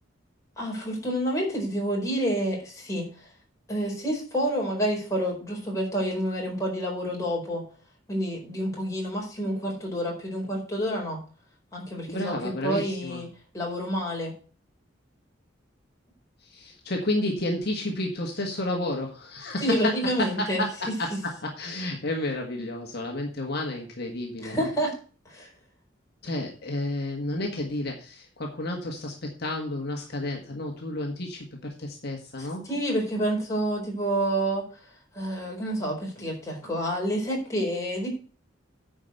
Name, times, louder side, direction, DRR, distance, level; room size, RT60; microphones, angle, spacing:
voice 1, 0.6-3.1 3.7-7.6 8.1-11.2 11.7-13.3 13.5-14.3 19.6-20.6 24.4-24.9 25.3-25.5 32.7-34.6 35.1-38.1, equal, 15° left, -2 dB, 4.6 m, -28 dB
voice 2, 12.1-13.2 16.4-24.7 26.2-32.7, left 1 dB, 55° left, 1 dB, 1.6 m, -31 dB
9.7 x 5.2 x 7.9 m, 0.39 s
head